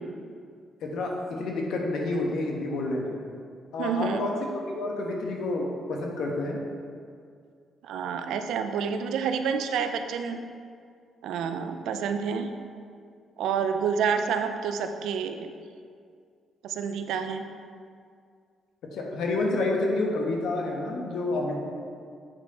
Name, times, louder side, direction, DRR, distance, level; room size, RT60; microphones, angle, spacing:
voice 1, 0.8-3.1 3.7-6.6 18.9-21.6, left 2 dB, 75° left, 0 dB, 1.1 m, -29 dB
voice 2, 3.8-4.3 7.8-10.4 11.2-12.5 13.4-15.5 16.6-17.4, right 6 dB, 85° right, 7 dB, 0.4 m, -28 dB
7.9 x 4.3 x 4.2 m, 2.2 s
cardioid pair, 90°, 0 cm